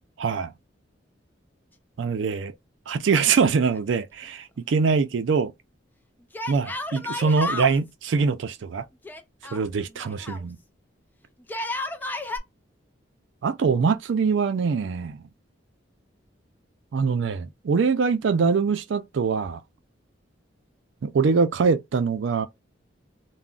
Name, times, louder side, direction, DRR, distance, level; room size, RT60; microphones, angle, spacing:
voice 1, 0.2-0.5 2.0-2.5 2.9-5.5 6.5-8.8 9.5-10.6 13.4-15.2 16.9-19.6 21.0-22.5, right 5 dB, 75° right, 0.4 m, -23 dB
Yell, 3.1-4.0 4.2-4.3 6.3-7.8 9.0-10.4 11.4-12.4, left 2 dB, 10° left, 0.3 m, -32 dB
2.3 x 2.1 x 3.7 m
head